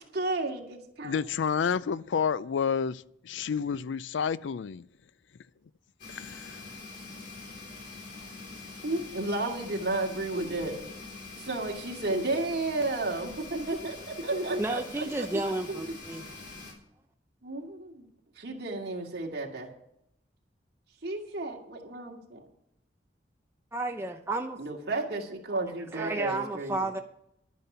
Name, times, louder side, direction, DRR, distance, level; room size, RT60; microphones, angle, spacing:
voice 1, 0.1-1.2 8.8-10.9 11.3-15.3 15.7-16.0 17.4-18.1 18.4-19.7 21.0-22.5 24.6-26.9, right 2 dB, 60° right, 2.3 m, -32 dB
voice 2, 1.0-4.9 6.1-6.6, left 6 dB, 85° left, 0.4 m, -30 dB
sound 1, 6.0-16.7, left 3 dB, 70° left, 3.8 m, -44 dB
voice 3, 14.6-16.3 23.7-24.6 25.9-27.0, right 2 dB, 15° right, 0.6 m, -32 dB
11.5 x 9.4 x 5.6 m
head